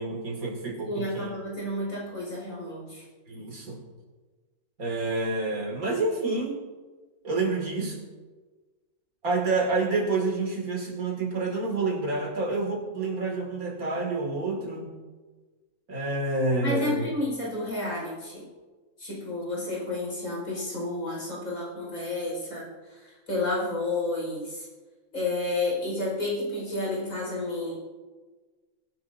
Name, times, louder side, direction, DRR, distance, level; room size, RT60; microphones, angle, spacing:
voice 1, 0.0-1.3 3.3-3.8 4.8-6.6 7.2-8.0 9.2-14.9 15.9-17.0, right 3 dB, 85° right, 1 dB, 2.9 m, -28 dB
voice 2, 0.8-3.0 16.6-18.5 19.0-24.7 25.1-27.7, left 2 dB, 75° left, -4 dB, 5.6 m, -31 dB
22.0 x 10.5 x 2.7 m, 1.3 s
omnidirectional pair, 1.5 m